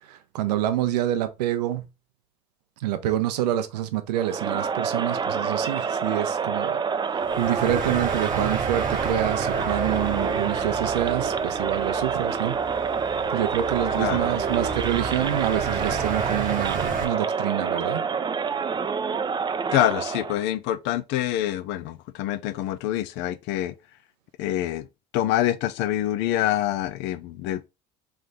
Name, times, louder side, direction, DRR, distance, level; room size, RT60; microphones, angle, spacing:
voice 1, 0.0-1.9 2.8-6.8 7.4-12.6 13.3-18.1, right 12 dB, 80° right, 0.7 m, -27 dB
Crowd, 4.1-20.4, right 5 dB, 20° right, 0.5 m, -27 dB
sound 1, 7.2-17.0, right 5 dB, 40° right, 1.1 m, -32 dB
voice 2, 19.7-23.7 24.4-24.9 25.1-27.7, left 13 dB, 60° left, 0.5 m, -26 dB
3.3 x 3.2 x 3.8 m
hypercardioid pair, 70°, 21 cm